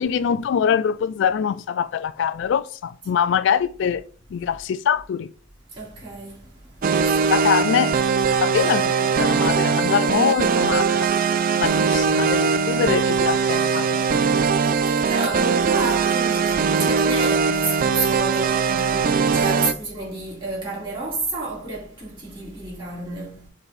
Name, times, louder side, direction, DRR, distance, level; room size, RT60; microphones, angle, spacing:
voice 1, 0.0-4.0 4.3-5.3 7.3-7.9 8.4-11.1 11.6-14.0, left 7 dB, 65° left, 0.3 m, -23 dB
voice 2, 5.7-7.4 14.6-23.5, right 3 dB, 25° right, 3.2 m, -30 dB
sound 1, 6.8-19.7, right 5 dB, 45° right, 0.4 m, -20 dB
7.1 x 3.3 x 4.3 m
head